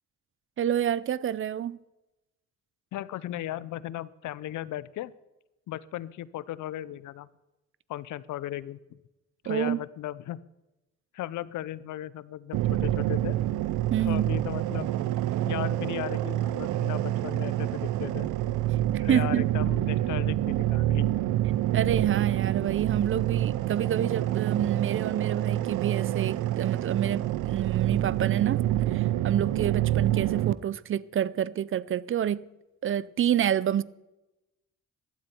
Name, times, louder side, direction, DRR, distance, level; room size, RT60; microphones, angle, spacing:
voice 1, 0.6-1.8 9.5-9.8 13.9-14.3 18.9-19.5 21.7-32.5 32.8-33.8, right 10 dB, 45° right, 0.5 m, -28 dB
voice 2, 2.9-5.1 5.7-7.3 7.9-9.0 9.4-10.4 11.1-13.4 14.1-14.9 15.5-18.6 19.0-21.1, left 13 dB, 75° left, 0.6 m, -36 dB
sound 1, 12.5-30.5, right 14 dB, 85° right, 0.6 m, -27 dB
15.5 x 12.5 x 4.5 m
cardioid pair, 90°, 30 cm